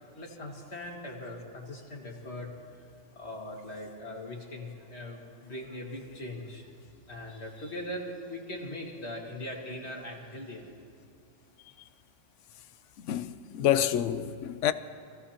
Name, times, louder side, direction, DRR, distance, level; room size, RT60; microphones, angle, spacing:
voice 1, 0.1-2.9 3.1-6.8 7.1-10.7, left 1 dB, 55° left, 2.3 m, -40 dB
voice 2, 13.0-14.7, left 10 dB, 75° left, 0.9 m, -27 dB
25.5 x 16.0 x 2.9 m
omnidirectional pair, 1.3 m